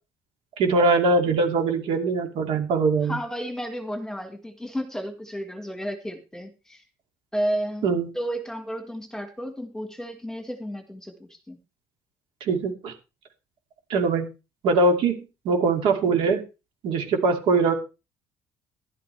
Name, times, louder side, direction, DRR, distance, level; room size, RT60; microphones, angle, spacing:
voice 1, 0.6-3.2 7.8-8.1 12.4-12.9 13.9-14.3 14.6-15.2 15.4-16.4 16.8-17.7, right 3 dB, 65° right, 4 dB, 2.6 m, -22 dB
voice 2, 3.1-6.8 7.3-11.6, equal, 5° left, 7 dB, 1.7 m, -32 dB
12.5 x 11.5 x 3.4 m, 0.29 s
cardioid pair, 140°, 10 cm